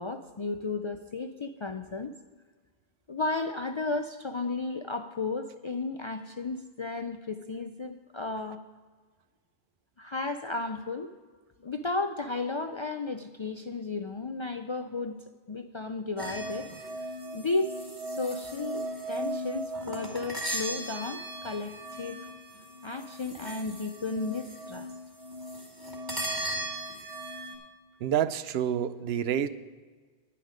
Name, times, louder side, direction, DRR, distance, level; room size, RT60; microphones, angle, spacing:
voice 1, 0.0-2.1 3.1-8.6 10.0-11.1 11.6-15.2 15.5-16.7 17.3-22.3 22.8-24.9, left 3 dB, 45° left, 7 dB, 0.4 m, -34 dB
sound 1, 16.2-27.5, right 1 dB, 20° right, 1.9 m, -37 dB
voice 2, 28.0-29.5, right 9 dB, 80° right, 14 dB, 0.8 m, -28 dB
10.0 x 9.9 x 5.0 m, 1.5 s
omnidirectional pair, 1.0 m